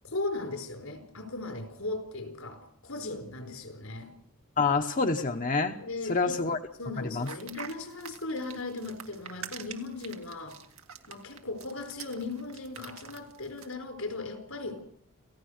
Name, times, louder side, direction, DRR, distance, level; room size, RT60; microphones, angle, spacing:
voice 1, 0.0-4.1 5.7-6.5 6.8-10.6 11.1-14.8, left 3 dB, 85° left, 6 dB, 4.8 m, -37 dB
voice 2, 4.6-5.8 6.1-6.6 7.0-7.3, left 4 dB, 40° left, 5 dB, 1.0 m, -27 dB
sound 1, 7.2-13.7, right 8 dB, 85° right, 2.1 m, -45 dB
28.5 x 16.5 x 6.5 m, 0.70 s
head